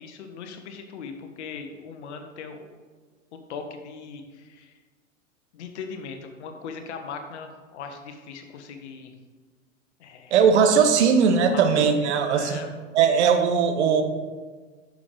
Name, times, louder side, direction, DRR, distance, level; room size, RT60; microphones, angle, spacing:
voice 1, 0.0-2.7 3.3-4.7 5.5-9.1 10.0-10.3 11.0-11.2 11.5-12.7, left 5 dB, 60° left, 6 dB, 1.2 m, -39 dB
voice 2, 10.3-12.6 12.9-14.0, right 6 dB, 60° right, 7 dB, 1.1 m, -19 dB
10.0 x 6.5 x 3.4 m, 1.4 s
figure-of-eight pair, 90°, 40 cm